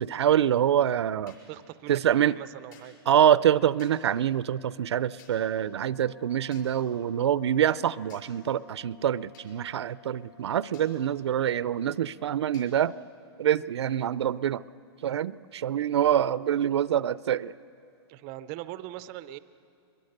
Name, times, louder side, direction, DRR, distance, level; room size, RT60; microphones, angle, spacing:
voice 1, 0.0-1.3 1.9-2.3 3.1-12.9 13.4-14.6 15.0-17.5, right 10 dB, 80° right, 19 dB, 0.5 m, -25 dB
sound 1, 1.3-1.4 2.7-2.9 3.8-3.9 5.2-5.3 6.5-6.7 8.1-8.2 9.3-9.5 10.7-10.9 12.5-12.7, left 8 dB, 50° left, 6.2 m, -55 dB
voice 2, 1.5-3.0 18.1-19.4, right 14 dB, 20° right, 15 dB, 0.4 m, -41 dB
sound 2, 5.4-12.0, left 6 dB, 75° left, 2.2 m, -56 dB
23.5 x 22.5 x 6.6 m, 2.5 s
hypercardioid pair, 170°, 14 cm